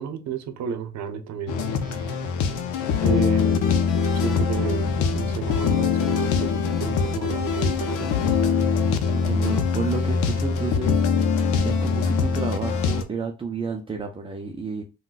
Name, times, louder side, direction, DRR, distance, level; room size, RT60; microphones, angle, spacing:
voice 1, 0.0-2.3 3.0-3.7 4.1-8.4, right 7 dB, 65° right, 0.7 m, -32 dB
sound 1, 1.5-13.0, left 5 dB, 90° left, 0.6 m, -23 dB
voice 2, 4.5-4.9 9.1-11.0 11.6-14.8, right 4 dB, 20° right, 0.4 m, -31 dB
3.7 x 2.2 x 2.4 m
cardioid pair, 90°, 30 cm